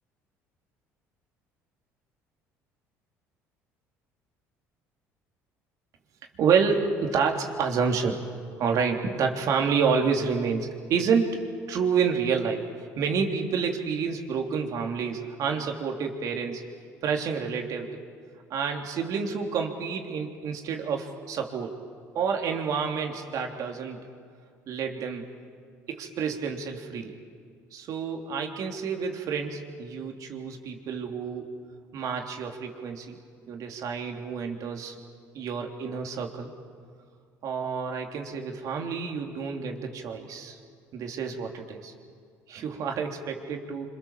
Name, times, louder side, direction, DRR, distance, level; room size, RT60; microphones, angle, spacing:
voice 1, 6.4-8.2 8.6-11.4 11.7-12.7 13.0-16.6 17.0-18.0 18.5-21.7 22.1-24.0 24.7-25.3 25.9-27.1 27.7-31.6 31.9-33.2 33.5-34.9 35.3-36.5 37.4-40.6 40.9-41.9 42.5-43.9, right 6 dB, 60° right, 2 dB, 3.3 m, -29 dB
26.5 x 26.0 x 7.4 m, 2.1 s
supercardioid pair, 85°, 6 cm